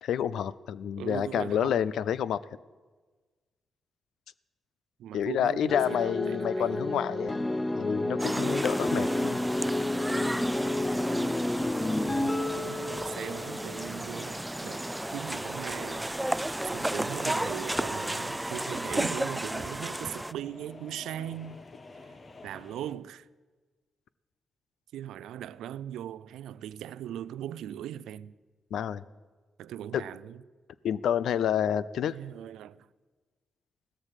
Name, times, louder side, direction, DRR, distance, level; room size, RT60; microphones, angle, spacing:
voice 1, 0.0-2.4 5.1-9.4 28.7-29.0 29.9-30.0 30.8-32.2, left 9 dB, 80° left, 0.4 m, -29 dB
voice 2, 1.0-1.8 5.0-7.1 11.8-16.2 16.7-21.6 22.4-23.3 24.9-28.3 29.6-30.4 32.0-32.9, right 11 dB, 85° right, 0.4 m, -39 dB
sound 1, 5.7-14.1, left 1 dB, 20° left, 0.7 m, -30 dB
sound 2, 8.2-20.3, right 1 dB, 10° right, 0.3 m, -33 dB
sound 3, 9.2-22.9, left 3 dB, 40° left, 1.2 m, -50 dB
16.0 x 13.5 x 4.9 m
supercardioid pair, 60°, 0 cm